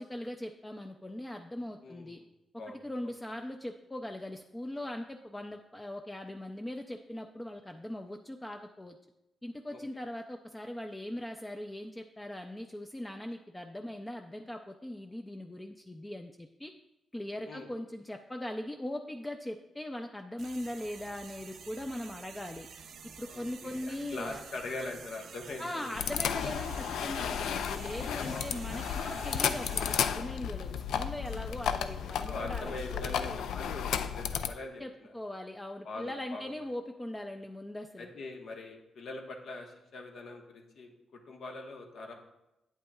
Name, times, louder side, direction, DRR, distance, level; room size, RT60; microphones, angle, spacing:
voice 1, 0.0-2.2 2.8-9.0 9.4-16.7 17.1-22.7 23.2-24.4 25.6-32.7 33.1-33.4 34.8-38.1, left 1 dB, 15° left, 4 dB, 0.4 m, -40 dB
voice 2, 1.8-2.3 2.6-2.8 9.7-9.8 17.5-17.7 23.3-25.9 28.2-28.5 31.4-31.6 32.3-35.1 35.8-36.5 38.0-40.9 41.3-42.1, left 2 dB, 70° left, 2 dB, 1.1 m, -42 dB
sound 1, 20.4-30.0, right 6 dB, 70° right, 0.5 m, -49 dB
sound 2, 25.9-34.5, left 8 dB, 90° left, 0.3 m, -33 dB
8.7 x 8.2 x 2.3 m, 0.90 s
cardioid pair, 95°, 0 cm